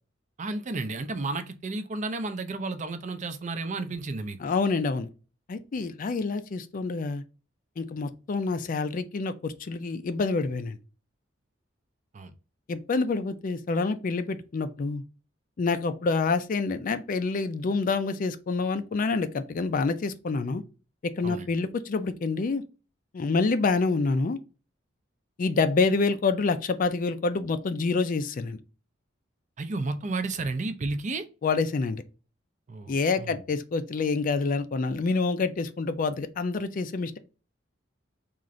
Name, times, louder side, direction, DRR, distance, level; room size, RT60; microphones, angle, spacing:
voice 1, 0.4-4.4 12.1-12.3 21.2-21.5 29.6-31.3 32.7-33.4, right 3 dB, 40° right, 0.5 m, -32 dB
voice 2, 4.4-5.1 5.5-7.2 7.8-10.8 12.7-15.0 15.6-20.6 21.2-22.6 23.1-24.4 25.4-28.6 31.4-32.0 32.9-37.2, left 4 dB, 45° left, 0.4 m, -27 dB
3.7 x 2.5 x 3.0 m
head